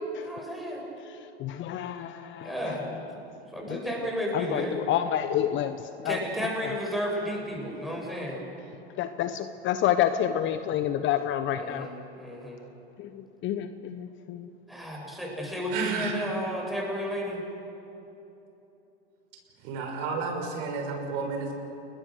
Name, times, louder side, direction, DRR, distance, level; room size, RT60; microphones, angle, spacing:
voice 1, 0.2-0.8 2.4-3.2 3.5-4.8 6.0-8.4 11.5-12.6 14.7-17.4, equal, ahead, -2 dB, 7.8 m, -33 dB
voice 2, 1.4-2.8 3.7-3.8 4.3-6.2 6.6-6.7 9.0-11.9 13.0-14.5, left 10 dB, 35° left, 10 dB, 1.0 m, -29 dB
voice 3, 15.7-16.2 19.6-21.5, right 4 dB, 55° right, 3 dB, 5.8 m, -31 dB
29.0 x 21.5 x 6.7 m, 3.0 s
hypercardioid pair, 105°, 33 cm